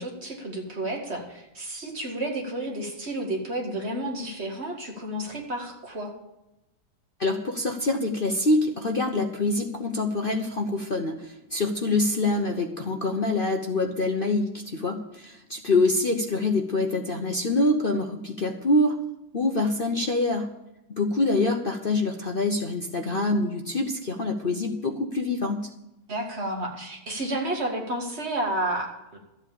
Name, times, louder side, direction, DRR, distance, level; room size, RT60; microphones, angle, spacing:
voice 1, 0.0-6.1 26.1-28.9 29.1-29.2, right 1 dB, 30° right, 1 dB, 2.4 m, -31 dB
voice 2, 7.2-19.0 19.3-20.5 20.9-25.7, left 2 dB, 45° left, 3 dB, 0.7 m, -25 dB
13.0 x 8.4 x 7.0 m, 0.93 s
omnidirectional pair, 2.2 m